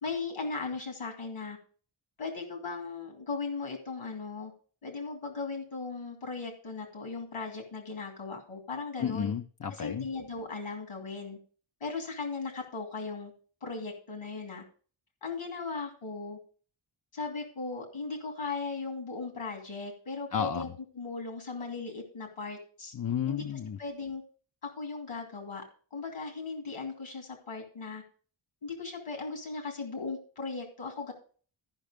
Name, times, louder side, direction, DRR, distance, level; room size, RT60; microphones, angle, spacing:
voice 1, 0.0-1.6 2.2-4.5 4.8-9.3 9.7-11.4 11.8-13.3 13.6-14.6 15.2-16.4 17.1-20.7 20.9-22.9 23.3-23.4 23.8-24.2 24.8-25.6 25.9-28.0 28.6-31.1, left 4 dB, 80° left, 3 dB, 2.7 m, -37 dB
voice 2, 9.0-10.1 20.3-20.7 22.9-23.8, left 8 dB, 45° left, 6 dB, 0.5 m, -32 dB
13.5 x 5.7 x 5.1 m, 0.41 s
wide cardioid pair, 120°, 50 cm